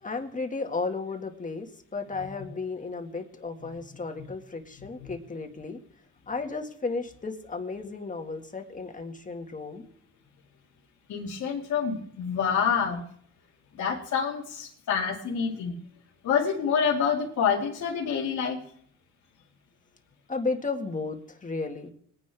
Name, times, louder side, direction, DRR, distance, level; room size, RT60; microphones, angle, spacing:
voice 1, 0.0-5.8 6.3-9.8 20.3-21.9, left 3 dB, 25° left, 4 dB, 1.9 m, -34 dB
voice 2, 11.1-13.0 13.7-15.8 16.2-18.6, left 6 dB, 70° left, -4 dB, 2.2 m, -27 dB
20.5 x 9.7 x 3.5 m, 0.63 s
cardioid pair, 90°, 30 cm